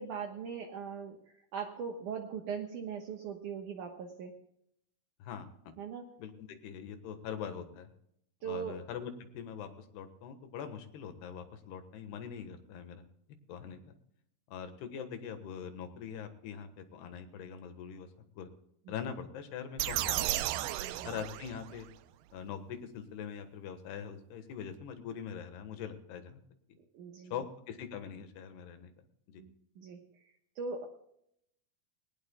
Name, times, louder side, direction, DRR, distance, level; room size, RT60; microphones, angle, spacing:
voice 1, 0.0-4.4 5.8-6.1 8.4-8.8 20.8-21.2 26.9-27.3 29.4-30.9, right 6 dB, 65° right, 2 dB, 2.3 m, -40 dB
voice 2, 5.2-5.7 6.2-7.9 8.5-13.0 13.5-14.0 14.5-18.1 18.4-18.5 18.9-20.7 21.1-21.9 22.3-26.4 27.3-29.4, left 7 dB, 85° left, 7 dB, 3.5 m, -43 dB
sound 1, 19.8-21.9, right 14 dB, 85° right, 2.7 m, -34 dB
20.0 x 18.5 x 2.3 m, 0.74 s
omnidirectional pair, 4.5 m